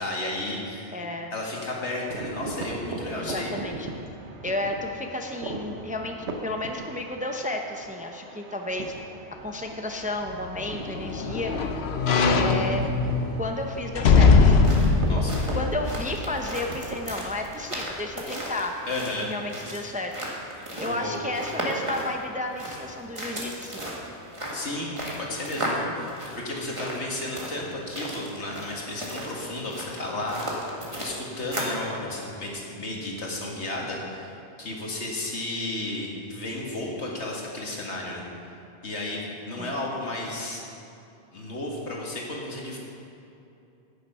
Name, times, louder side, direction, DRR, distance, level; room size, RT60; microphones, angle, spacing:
voice 1, 0.0-1.0 1.3-3.6 15.1-15.4 18.9-19.3 20.9-21.2 24.5-38.2 38.8-40.6 41.3-42.8, left 2 dB, 85° left, -2 dB, 2.1 m, -33 dB
voice 2, 0.9-1.3 3.2-3.9 4.4-6.2 6.4-8.9 9.4-11.5 12.3-12.9 13.4-15.0 15.5-18.7 19.2-20.1 20.8-23.8 39.6-39.7, left 2 dB, 10° right, 3 dB, 0.6 m, -32 dB
sound 1, 2.1-17.1, right 2 dB, 85° right, 1.3 m, -39 dB
sound 2, 10.3-16.7 17.1-17.2, left 4 dB, 70° left, 1.0 m, -22 dB
sound 3, 14.4-31.9, equal, 30° right, 1.8 m, -35 dB
10.5 x 9.3 x 5.6 m, 2.8 s
omnidirectional pair, 1.1 m